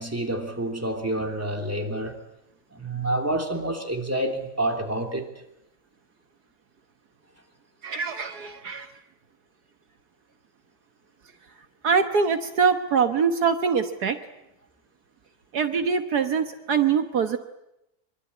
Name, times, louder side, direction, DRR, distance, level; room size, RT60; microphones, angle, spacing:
voice 1, 0.0-2.2 2.7-5.3, right 1 dB, 10° right, 3.2 m, -28 dB
voice 2, 7.8-8.9 11.8-14.2 15.5-17.4, right 6 dB, 70° right, 1.7 m, -23 dB
25.0 x 24.0 x 8.6 m
omnidirectional pair, 1.8 m